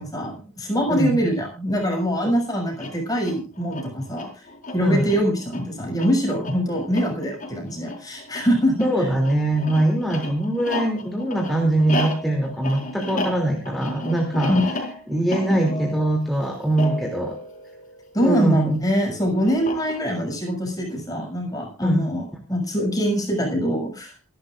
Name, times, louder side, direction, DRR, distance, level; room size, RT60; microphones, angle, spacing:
voice 1, 0.0-4.5 4.7-9.1 14.5-14.6 18.1-24.1, equal, 15° left, 1 dB, 7.0 m, -23 dB
sound 1, 2.7-18.4 19.5-20.3, left 1 dB, 35° left, 4.7 m, -33 dB
voice 2, 4.8-5.2 8.8-14.5 15.1-17.3 18.2-18.8 21.8-22.0, right 1 dB, ahead, 0 dB, 2.9 m, -22 dB
27.0 x 11.5 x 2.6 m, 0.34 s
head